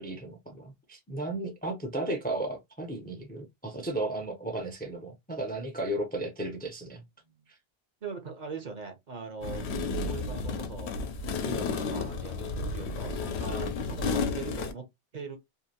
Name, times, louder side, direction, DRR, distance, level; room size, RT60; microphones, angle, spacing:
voice 1, 0.0-7.0, right 2 dB, 15° left, 0.4 m, -34 dB
voice 2, 8.0-9.6 10.0-14.8 15.1-15.4, right 5 dB, 50° right, 0.7 m, -41 dB
sound 1, 9.4-14.7, left 4 dB, 85° left, 0.8 m, -32 dB
2.7 x 2.5 x 2.7 m
omnidirectional pair, 1.1 m